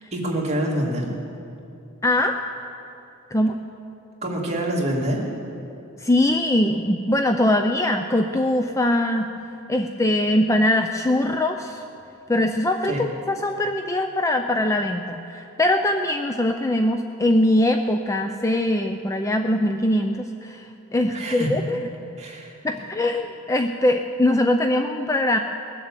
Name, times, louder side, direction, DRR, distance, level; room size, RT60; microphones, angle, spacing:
voice 1, 0.1-1.1 4.2-5.2 12.9-13.0 21.1-21.5 22.2-22.5, right 1 dB, 30° right, -2 dB, 2.4 m, -26 dB
voice 2, 2.0-2.4 3.3-3.6 6.0-9.3 9.7-11.8 12.3-21.9 22.6-25.4, left 1 dB, 15° left, 5 dB, 0.4 m, -22 dB
20.5 x 7.5 x 7.4 m, 2.8 s
head